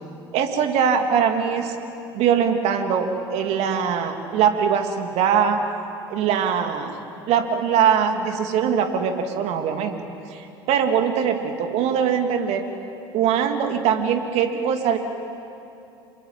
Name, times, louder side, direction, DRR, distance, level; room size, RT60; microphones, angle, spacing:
voice 1, 0.3-1.8 2.1-5.6 6.1-7.0 7.3-10.0 10.3-12.6 13.1-15.0, right 7 dB, 55° right, 5 dB, 2.9 m, -22 dB
28.0 x 22.5 x 8.9 m, 2.8 s
figure-of-eight pair, 65°, 13 cm